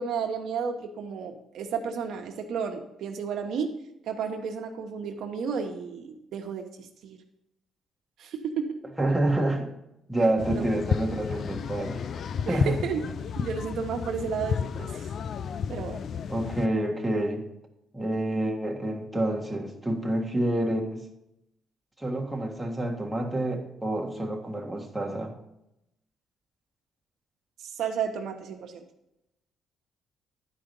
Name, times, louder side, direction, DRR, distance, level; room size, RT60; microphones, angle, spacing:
voice 1, 0.0-3.7 4.1-7.2 8.2-8.8 10.5-10.6 12.5-15.1 15.7-16.0 27.6-28.8, right 6 dB, 75° right, 3 dB, 1.0 m, -32 dB
voice 2, 9.0-9.7 10.1-12.0 12.5-12.8 16.3-17.5 17.9-21.0 22.0-25.3, right 1 dB, 5° right, -1 dB, 1.5 m, -28 dB
sound 1, 10.4-16.7, left 7 dB, 60° left, 0.4 m, -32 dB
10.5 x 4.8 x 5.3 m, 0.85 s
cardioid pair, 90°, 0 cm